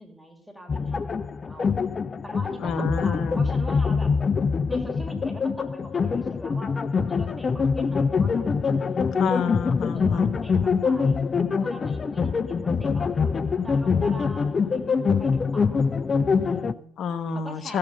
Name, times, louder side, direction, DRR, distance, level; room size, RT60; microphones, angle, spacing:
voice 1, 0.0-2.0 2.2-4.1 4.7-6.7 7.0-8.5 9.9-11.2 11.6-13.3 13.6-16.9 17.3-17.8, right 1 dB, ahead, 3 dB, 3.3 m, -43 dB
sound 1, 0.7-16.7, left 5 dB, 30° left, 0.6 m, -24 dB
voice 2, 2.6-3.5 9.2-10.3 17.0-17.8, left 5 dB, 55° left, 11 dB, 1.2 m, -28 dB
15.0 x 7.5 x 5.6 m, 0.67 s
hypercardioid pair, 65°, 0 cm